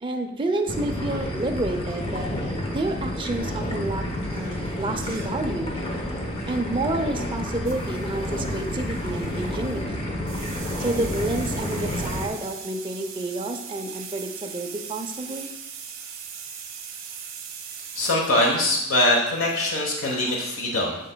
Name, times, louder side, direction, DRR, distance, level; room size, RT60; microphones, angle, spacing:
voice 1, 0.0-2.3 2.7-5.7 6.5-10.0 10.8-15.5, right 2 dB, 25° right, 4 dB, 0.6 m, -29 dB
sound 1, 0.7-12.3, left 1 dB, 30° left, 0.9 m, -30 dB
sound 2, 1.9-2.4 4.1-5.4 5.8-6.1 7.7-9.8 10.3-18.1, right 7 dB, 80° right, 1.0 m, -40 dB
voice 2, 17.9-21.0, left 1 dB, 85° left, -1 dB, 1.1 m, -22 dB
8.1 x 6.7 x 2.3 m, 0.91 s
head